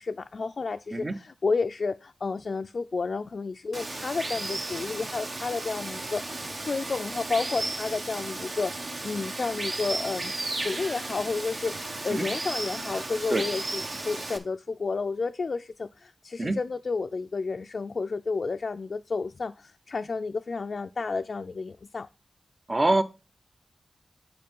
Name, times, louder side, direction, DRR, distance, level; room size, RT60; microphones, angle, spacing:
voice 1, 0.0-10.3 10.6-22.1, left 4 dB, 65° left, 0.3 m, -31 dB
Water, 3.7-14.4, right 2 dB, 55° right, 1.2 m, -34 dB
voice 2, 22.7-23.0, right 2 dB, 40° right, 0.8 m, -24 dB
7.6 x 4.5 x 5.4 m
cardioid pair, 45°, 0 cm